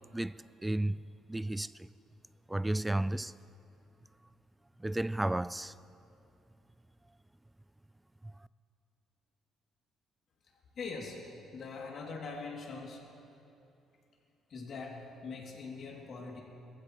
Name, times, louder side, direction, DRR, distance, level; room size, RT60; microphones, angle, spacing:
voice 1, 0.6-1.0 1.3-1.7 2.5-3.3 4.8-5.7, right 1 dB, 10° right, 0.3 m, -32 dB
voice 2, 10.8-13.0 14.5-16.4, left 4 dB, 55° left, 3.0 m, -42 dB
25.5 x 15.0 x 3.3 m
cardioid pair, 95°, 0 cm